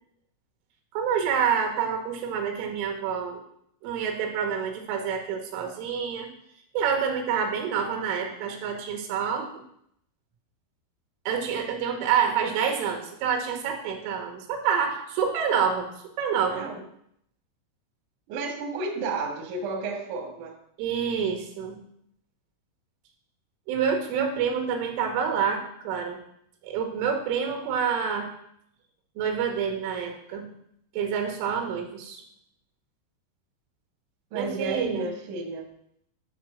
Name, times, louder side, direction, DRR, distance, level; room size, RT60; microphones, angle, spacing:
voice 1, 1.0-3.4 3.8-6.3 6.8-9.5 11.3-15.9 16.2-16.7 20.8-21.8 23.7-26.2 26.6-28.3 29.2-30.5 31.0-32.2 34.4-35.1, right 7 dB, 90° right, 4 dB, 3.8 m, -27 dB
voice 2, 16.5-16.8 18.3-20.6 34.3-35.7, right 3 dB, 60° right, 2 dB, 2.1 m, -32 dB
11.0 x 4.0 x 6.3 m, 0.71 s
omnidirectional pair, 5.6 m